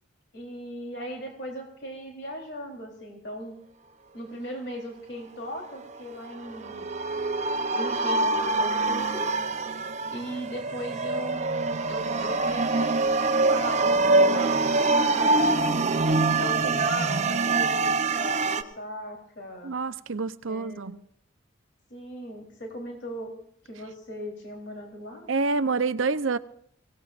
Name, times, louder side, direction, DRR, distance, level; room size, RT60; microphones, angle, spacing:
voice 1, 0.3-3.6 4.1-6.9 7.7-9.8 10.1-13.0 13.3-15.6 16.4-19.8 20.5-21.0 21.9-23.4 23.6-25.3, equal, 60° left, 1 dB, 3.6 m, -38 dB
sound 1, 6.3-18.6, right 3 dB, 35° right, 0.8 m, -24 dB
voice 2, 19.6-21.0 25.3-26.4, right 4 dB, 80° right, 12 dB, 0.7 m, -27 dB
24.5 x 17.5 x 2.5 m, 0.67 s
head